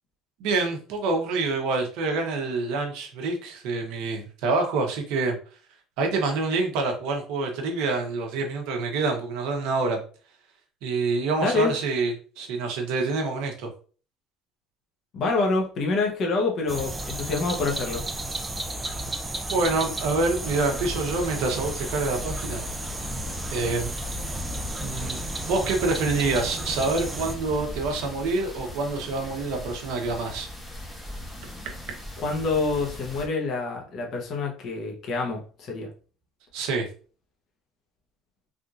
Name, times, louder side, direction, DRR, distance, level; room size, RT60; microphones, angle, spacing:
voice 1, 0.4-5.4 6.0-10.0 10.8-13.7 19.5-22.6 23.5-23.9 24.8-30.5 36.5-36.9, right 3 dB, 80° right, 0.9 m, -26 dB
voice 2, 11.4-11.7 15.1-18.0 32.2-35.9, left 3 dB, 45° left, 1.0 m, -26 dB
sound 1, 16.7-27.4, right 1 dB, 15° right, 0.4 m, -33 dB
sound 2, 20.4-33.3, left 1 dB, 5° left, 0.9 m, -39 dB
3.5 x 2.7 x 2.4 m
cardioid pair, 135°, 0 cm